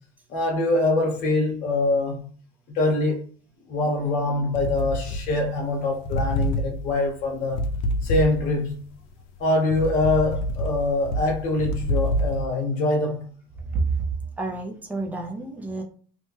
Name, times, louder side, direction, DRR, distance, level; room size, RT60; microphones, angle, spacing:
voice 1, 0.3-2.3 2.7-3.2 3.7-7.6 8.0-8.8 9.4-13.3, left 2 dB, 40° left, 0.9 m, -24 dB
sound 1, 4.5-5.7 6.0-8.7 9.2-12.4, equal, 70° left, 0.5 m, -27 dB
voice 2, 13.6-15.8, right 4 dB, 10° right, 0.3 m, -29 dB
2.7 x 2.1 x 3.0 m
cardioid pair, 170°, 20 cm